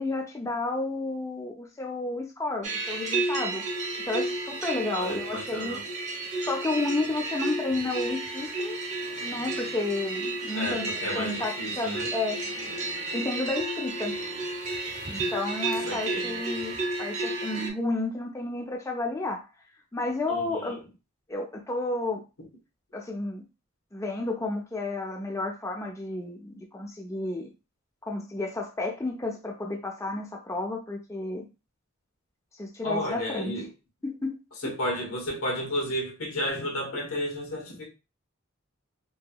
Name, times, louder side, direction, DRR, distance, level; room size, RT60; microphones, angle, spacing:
voice 1, 0.0-3.6 4.0-5.8 6.5-8.8 9.2-12.4 13.1-14.2 15.1-19.5 19.9-20.8 21.3-22.2 22.9-23.4 23.9-27.5 28.1-31.5 32.6-33.5 34.0-34.4 34.6-34.8, left 2 dB, 15° left, 0.4 m, -31 dB
sound 1, 2.6-17.7, right 2 dB, 35° right, 0.6 m, -32 dB
voice 2, 4.9-5.8 10.5-12.1 15.8-16.4 20.3-20.8 32.8-33.7 34.6-37.9, equal, 85° left, 1.0 m, -32 dB
2.8 x 2.6 x 2.2 m
head